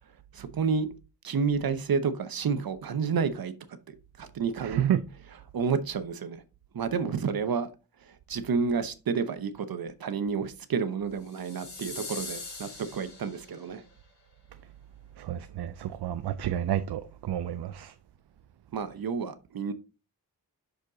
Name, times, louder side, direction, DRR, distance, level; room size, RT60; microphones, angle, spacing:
voice 1, 0.3-0.9 1.2-3.5 4.2-4.8 5.5-6.4 6.7-7.7 8.0-13.8 18.7-19.7, right 5 dB, 65° right, 0.8 m, -30 dB
voice 2, 4.6-5.0 15.2-17.9, right 10 dB, 90° right, 0.5 m, -30 dB
sound 1, 11.3-13.7, left 3 dB, 45° left, 3.3 m, -42 dB
6.4 x 5.1 x 3.9 m
wide cardioid pair, 140°, 38 cm